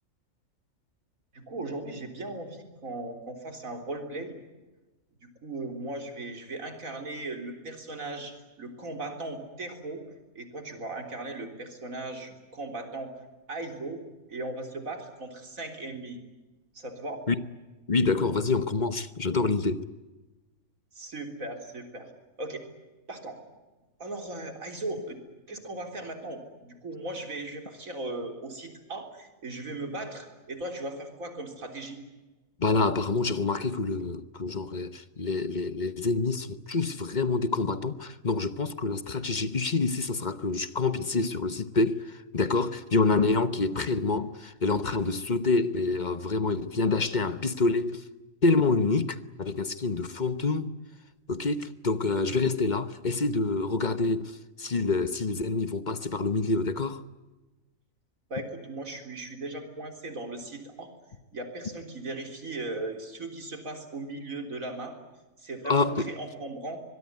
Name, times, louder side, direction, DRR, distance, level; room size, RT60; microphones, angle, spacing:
voice 1, 1.3-4.4 5.4-10.0 10.3-13.1 13.5-14.0 14.3-16.2 16.7-17.2 20.9-22.1 22.4-22.6 23.1-23.4 24.0-25.2 25.5-32.0 58.3-60.9 61.3-64.9 65.4-66.8, right 2 dB, 75° right, 4.1 m, -37 dB
voice 2, 17.9-19.9 32.6-48.0 48.4-50.7 51.3-57.0 65.6-66.1, left 3 dB, 35° left, 1.1 m, -27 dB
24.0 x 22.0 x 9.5 m
omnidirectional pair, 1.4 m